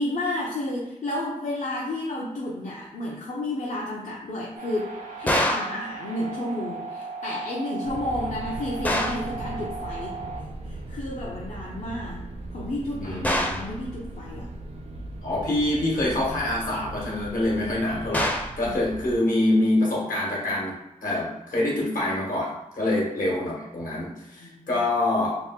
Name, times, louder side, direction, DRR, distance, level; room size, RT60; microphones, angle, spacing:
voice 1, 0.0-10.2 10.6-12.2 12.5-14.5 18.6-18.8 22.8-22.9 24.4-24.8, left 1 dB, 65° left, -5 dB, 0.6 m, -31 dB
sound 1, 4.6-10.4, right 4 dB, 75° right, 0.9 m, -37 dB
sound 2, 5.3-5.8 8.8-9.3 13.2-13.7 18.1-18.6, left 1 dB, 10° left, 0.4 m, -25 dB
sound 3, 7.8-19.2, right 2 dB, 50° right, 0.4 m, -38 dB
voice 2, 13.0-13.6 15.2-20.7 21.0-25.4, left 1 dB, 80° left, -4 dB, 1.2 m, -25 dB
3.0 x 2.3 x 3.5 m, 0.99 s
wide cardioid pair, 80°, 14 cm